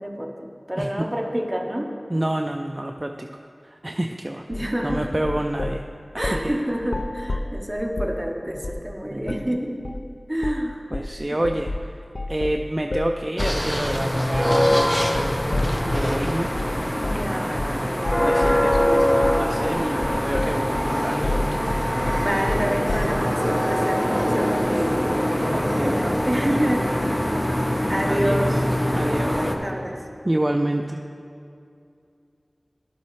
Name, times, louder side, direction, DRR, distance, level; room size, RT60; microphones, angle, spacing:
voice 1, 0.0-2.0 4.5-5.1 6.2-9.8 10.3-10.8 11.3-11.4 16.9-18.3 22.1-25.1 25.8-27.2 27.9-28.7 29.0-30.1, equal, 15° right, 1 dB, 0.9 m, -28 dB
voice 2, 0.8-1.1 2.1-3.3 3.8-4.5 4.8-5.8 6.1-6.5 9.1-9.6 10.9-11.7 12.3-14.9 15.1-15.4 15.9-16.5 17.5-21.5 25.5-25.9 26.3-26.7 28.1-28.7 29.0-29.5 30.3-31.0, right 1 dB, 30° right, 3 dB, 0.3 m, -28 dB
sound 1, 4.5-5.8 6.2-6.5 6.8-8.2 8.6-8.9 9.2-9.5 9.8-10.1 10.4-10.7 10.9-16.2 16.6-16.8 17.0-17.3 17.6-17.8 18.1-23.2, left 2 dB, 70° left, 0.3 m, -30 dB
sound 2, 13.4-29.6, equal, 15° left, 0.7 m, -23 dB
sound 3, 20.9-26.3, equal, 55° left, 1.4 m, -41 dB
11.5 x 7.1 x 3.1 m, 2.5 s
wide cardioid pair, 45°, 0 cm